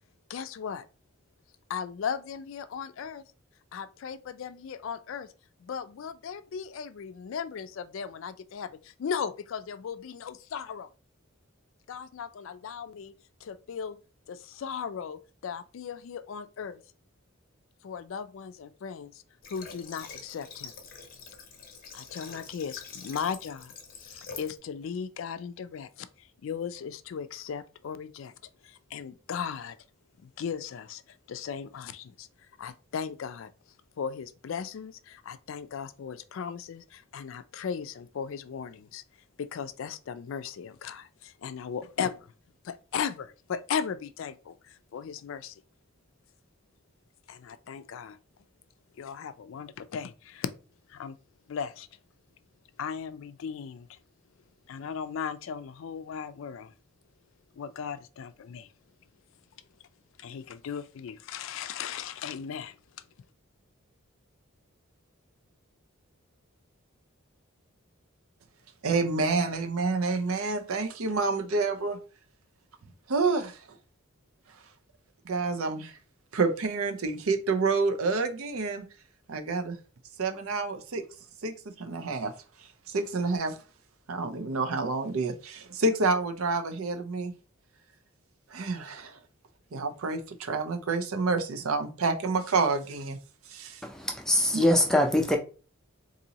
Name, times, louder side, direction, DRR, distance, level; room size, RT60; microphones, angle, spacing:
voice 1, 0.3-0.9 1.7-3.2 3.7-5.3 5.6-10.9 11.9-13.1 13.4-14.0 14.3-16.8 17.8-19.2 19.5-20.7 21.9-28.3 28.6-29.8 30.2-32.3 32.6-33.5 34.0-39.0 39.4-42.3 42.6-45.6 47.3-48.2 48.9-50.5 50.9-51.2 51.5-51.9 52.8-54.0 54.7-56.7 57.6-58.7 60.2-62.8, left 7 dB, 70° left, 0.3 m, -37 dB
Water / Water tap faucet, 19.4-24.6, left 5 dB, 40° left, 0.7 m, -45 dB
voice 2, 68.8-72.0 73.1-73.6 75.3-75.9 76.3-78.8 79.3-79.8 80.2-81.0 81.4-82.3 82.9-83.6 84.1-87.3 88.5-89.1 89.7-93.2 93.5-93.8 94.5-94.7, right 3 dB, 85° right, 0.6 m, -28 dB
voice 3, 93.8-95.4, left 1 dB, 5° left, 0.5 m, -23 dB
3.9 x 2.6 x 2.8 m
head